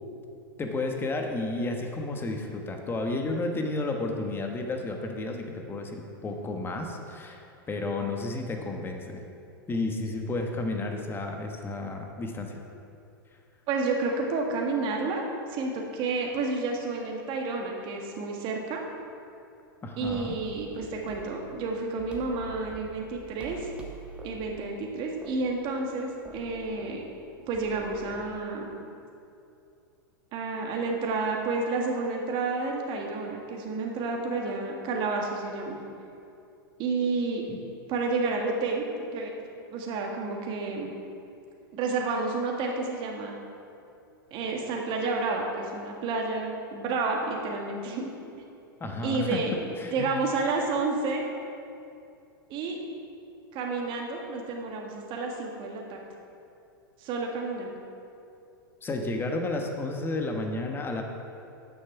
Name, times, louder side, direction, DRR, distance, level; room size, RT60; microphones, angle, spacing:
voice 1, 0.6-7.4 7.7-9.2 9.7-12.6 19.8-20.4 37.5-37.6 48.8-49.4 49.8-50.1 58.8-61.0, left 2 dB, 20° left, 3 dB, 1.2 m, -32 dB
voice 2, 13.7-15.2 15.5-18.8 20.0-23.7 24.2-27.0 27.5-28.7 30.3-35.8 36.8-37.4 37.9-38.9 39.1-39.3 39.7-40.9 41.7-43.4 44.3-48.1 49.0-51.2 52.5-52.8 53.5-56.0 57.0-57.7, right 3 dB, 45° right, 0 dB, 1.7 m, -30 dB
sound 1, 20.0-28.3, right 1 dB, 10° right, 1.4 m, -47 dB
9.4 x 6.6 x 5.8 m, 2.6 s
hypercardioid pair, 110°, 12 cm